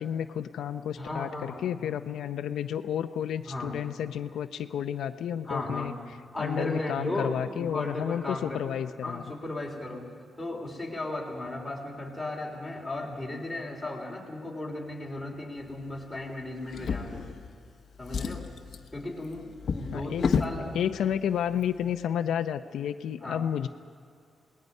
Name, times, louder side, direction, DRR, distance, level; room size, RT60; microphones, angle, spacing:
voice 1, 0.0-5.9 6.4-9.2 19.9-20.4 20.7-23.7, left 9 dB, 85° left, 9 dB, 0.6 m, -31 dB
voice 2, 1.0-1.7 3.5-3.8 5.4-5.9 6.3-8.7 9.0-10.1 10.4-17.3 18.0-18.5 18.9-20.8 23.2-23.4, left 2 dB, 5° left, -2 dB, 3.5 m, -35 dB
Drawer open or close, 16.7-17.7 18.0-20.6 21.5-21.6 22.0-22.1, left 6 dB, 45° left, 1.1 m, -31 dB
28.0 x 19.5 x 5.5 m, 2.3 s
wide cardioid pair, 170°, 0 cm